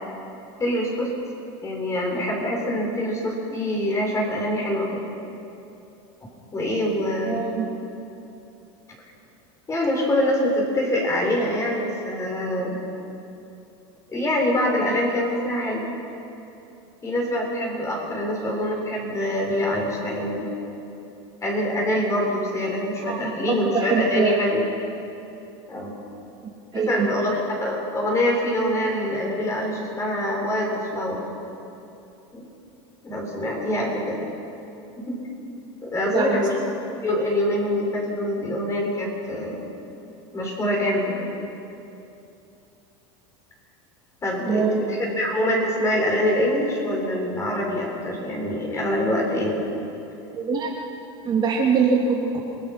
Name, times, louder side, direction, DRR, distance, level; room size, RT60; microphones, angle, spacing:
voice 1, 0.6-1.1 1.6-5.0 6.5-7.4 9.7-12.8 14.1-15.9 17.0-20.5 21.4-24.7 25.7-25.9 26.7-31.2 32.3-32.5 33.0-34.2 35.0-35.2 35.8-36.6 37.0-39.6 40.3-41.3 44.2-49.6, left 1 dB, 20° left, -1 dB, 6.7 m, -25 dB
voice 2, 7.2-7.7 23.0-24.5 26.7-27.1 36.0-36.4 44.5-44.9 50.3-50.7 51.2-52.4, right 5 dB, 30° right, -2 dB, 2.8 m, -23 dB
28.5 x 20.5 x 6.0 m, 2.8 s
supercardioid pair, 130°, 14 cm